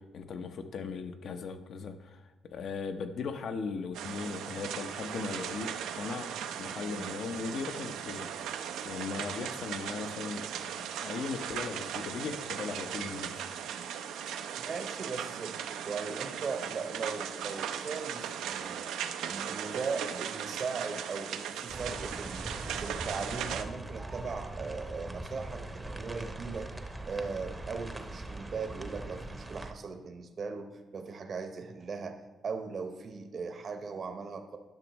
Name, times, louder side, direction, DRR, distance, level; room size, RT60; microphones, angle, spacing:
voice 1, 0.0-2.2 2.5-13.4, left 5 dB, 65° left, 7 dB, 0.7 m, -38 dB
sound 1, 3.9-23.6, right 8 dB, 85° right, 0.5 m, -38 dB
voice 2, 14.6-15.6 15.8-18.9 19.3-22.5 22.8-26.7 27.1-34.6, right 4 dB, 50° right, 7 dB, 0.8 m, -38 dB
sound 2, 21.7-29.7, right 2 dB, 15° right, 0.7 m, -41 dB
10.5 x 6.1 x 3.0 m, 1.3 s
cardioid pair, 90°, 0 cm